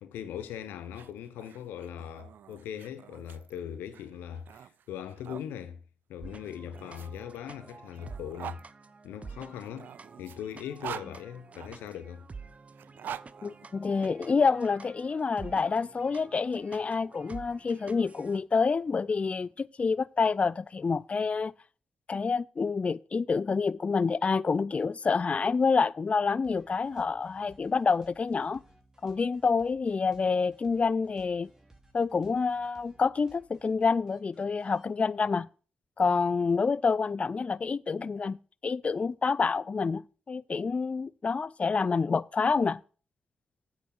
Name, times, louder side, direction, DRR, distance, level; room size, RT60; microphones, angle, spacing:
voice 1, 0.0-5.8 6.1-8.6 9.0-9.9 10.2-12.3, left 9 dB, 85° left, 1.0 m, -40 dB
sound 1, 0.8-5.5 6.4-8.6 9.5-11.9 12.7-14.3, right 9 dB, 70° right, 0.4 m, -45 dB
sound 2, 6.2-18.4, right 4 dB, 40° right, 0.7 m, -49 dB
voice 2, 13.4-21.5 22.1-28.6 29.0-31.5 31.9-35.5 36.0-38.4 38.6-42.8, left 5 dB, 40° left, 0.4 m, -28 dB
sound 3, 26.4-34.8, right 2 dB, 20° right, 3.0 m, -61 dB
8.6 x 6.5 x 6.1 m
supercardioid pair, 45°, 3 cm